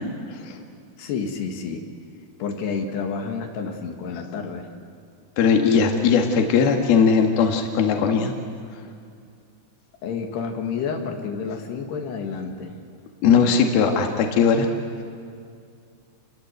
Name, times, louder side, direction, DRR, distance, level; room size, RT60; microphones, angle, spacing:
voice 1, 1.0-1.9 2.4-4.7 10.0-12.7, left 5 dB, 85° left, 3 dB, 4.0 m, -29 dB
voice 2, 5.4-8.3 13.2-14.7, left 6 dB, 70° left, 3 dB, 3.6 m, -19 dB
29.0 x 22.0 x 8.1 m, 2.3 s
omnidirectional pair, 4.6 m